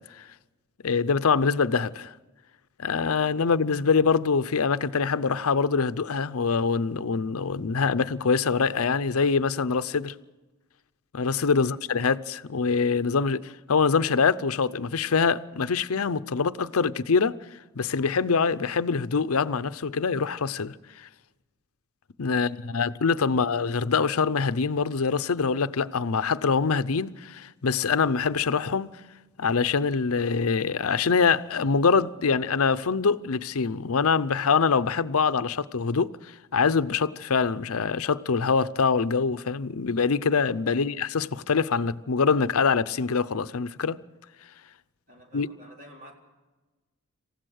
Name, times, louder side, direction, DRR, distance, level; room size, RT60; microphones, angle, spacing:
voice 1, 0.8-2.1 2.8-10.1 11.1-17.4 17.7-21.1 22.2-29.0 29.4-44.0 45.3-45.5, left 5 dB, 80° left, 0.6 m, -24 dB
voice 2, 22.3-22.8 23.3-23.4 40.7-40.9 45.1-46.1, equal, 40° right, 4.3 m, -51 dB
27.0 x 15.0 x 6.5 m
head